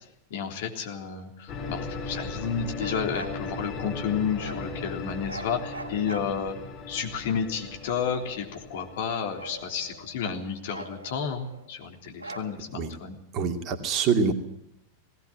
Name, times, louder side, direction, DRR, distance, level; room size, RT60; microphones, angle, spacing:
voice 1, 0.3-6.6 6.9-13.2, left 7 dB, 55° left, 3 dB, 3.6 m, -31 dB
sound 1, 1.5-10.3, left 3 dB, 35° left, 5.5 m, -38 dB
Bark, 2.7-3.4 4.4-4.7 5.2-6.7 7.5-8.6 9.1-10.2 10.7-11.7 12.2-12.9, right 2 dB, 80° right, 3.3 m, -42 dB
voice 2, 13.3-14.3, right 5 dB, 35° right, 5 dB, 2.6 m, -25 dB
19.0 x 17.5 x 7.6 m, 0.80 s
figure-of-eight pair, 90°, 0 cm